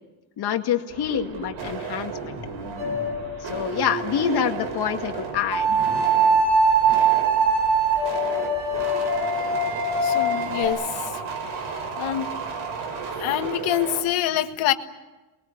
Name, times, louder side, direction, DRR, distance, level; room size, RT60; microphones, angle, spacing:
voice 1, 0.4-2.4 3.4-5.8, left 8 dB, 55° left, 5 dB, 2.2 m, -26 dB
sound 1, 0.9-14.0, right 5 dB, 70° right, 5.4 m, -33 dB
sound 2, 2.8-3.5 5.5-10.6, right 3 dB, 55° right, 5.9 m, -22 dB
voice 2, 10.0-10.8 12.0-12.3 13.2-14.7, left 12 dB, 85° left, 8 dB, 1.7 m, -25 dB
28.0 x 21.5 x 8.1 m, 1.1 s
cardioid pair, 155°, 47 cm